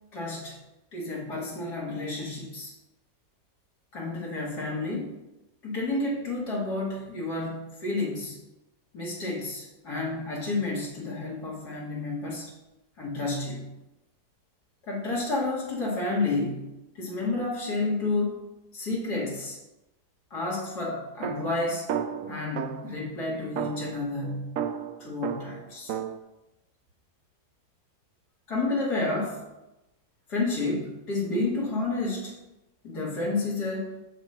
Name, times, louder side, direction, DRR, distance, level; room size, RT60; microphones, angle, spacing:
voice 1, 0.1-0.6 0.9-2.7 3.9-5.2 5.6-8.4 8.9-12.5 13.0-13.7 14.8-16.7 17.0-18.4 18.7-19.6 20.3-21.9 22.3-24.6 25.0-25.9 28.5-29.4 30.3-32.3 32.8-34.0, left 2 dB, 80° left, -5 dB, 2.7 m, -30 dB
sound 1, 21.2-23.0 23.6-26.2, right 8 dB, 65° right, 0.9 m, -33 dB
7.1 x 6.4 x 5.8 m, 0.97 s
omnidirectional pair, 1.7 m